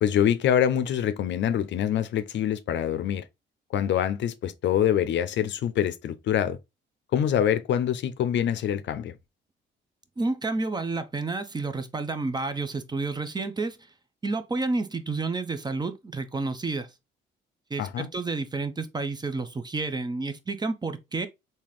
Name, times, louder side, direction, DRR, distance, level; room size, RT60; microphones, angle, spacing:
voice 1, 0.0-3.2 3.7-6.6 7.1-9.1 17.8-18.1, left 10 dB, 65° left, 0.5 m, -25 dB
voice 2, 10.2-13.8 14.2-16.9 17.7-21.3, right 3 dB, 20° right, 0.6 m, -30 dB
3.7 x 2.8 x 3.1 m
cardioid pair, 90°, 20 cm